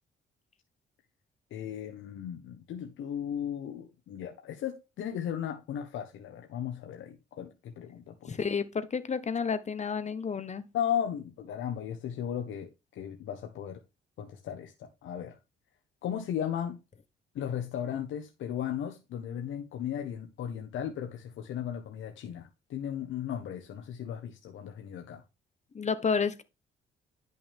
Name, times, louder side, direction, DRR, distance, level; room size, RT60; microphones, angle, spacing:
voice 1, 1.5-8.4 10.7-13.8 14.2-15.4 16.0-16.8 17.3-25.2, left 9 dB, 75° left, 1.4 m, -36 dB
voice 2, 8.3-10.7 25.7-26.4, left 5 dB, 35° left, 1.3 m, -30 dB
10.5 x 6.1 x 3.6 m
cardioid pair, 90°, 20 cm